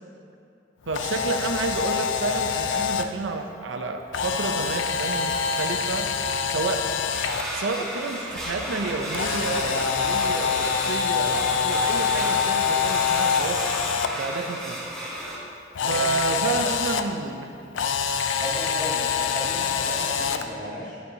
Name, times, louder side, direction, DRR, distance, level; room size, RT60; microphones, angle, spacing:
Camera, 0.9-3.1 4.1-7.4 9.1-14.1 15.8-17.0 17.7-20.5, left 6 dB, 75° left, 0.4 m, -25 dB
voice 1, 0.9-6.1 6.5-6.9 7.5-13.7 14.1-14.8 15.9-17.5, right 3 dB, 85° right, 4 dB, 0.6 m, -30 dB
sound 1, 7.1-15.4, equal, 5° left, 1.2 m, -33 dB
sound 2, 8.3-11.3, equal, 55° right, 1.6 m, -42 dB
voice 2, 18.4-21.0, equal, 40° left, -6 dB, 1.8 m, -35 dB
9.4 x 7.5 x 2.8 m, 2.5 s
head